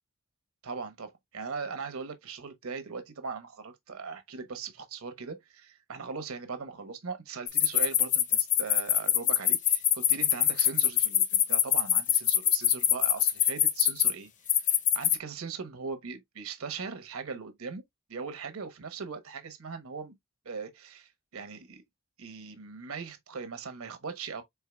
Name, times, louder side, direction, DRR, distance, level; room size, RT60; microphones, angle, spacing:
voice 1, 0.6-17.8 18.1-20.1 20.4-21.8 22.2-24.4, right 5 dB, 85° right, 1.0 m, -40 dB
sound 1, 7.5-14.1 14.5-15.2, left 10 dB, 35° left, 0.6 m, -23 dB
4.6 x 3.7 x 2.2 m
head